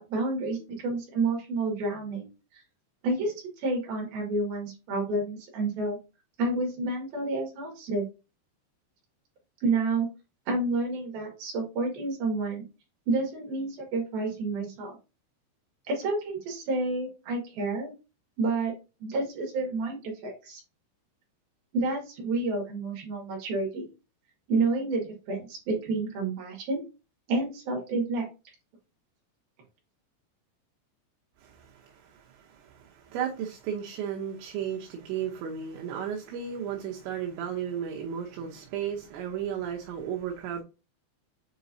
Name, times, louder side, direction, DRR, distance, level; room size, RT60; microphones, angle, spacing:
voice 1, 0.0-2.3 3.0-6.0 6.4-8.0 9.6-10.1 10.5-12.6 13.1-15.0 15.9-17.9 18.4-18.7 19.0-20.6 21.7-23.9 24.5-26.8 27.3-28.3, right 3 dB, 60° right, 3.3 m, -29 dB
voice 2, 31.4-40.6, right 8 dB, 75° right, 3.0 m, -34 dB
8.1 x 4.5 x 2.7 m
omnidirectional pair, 5.6 m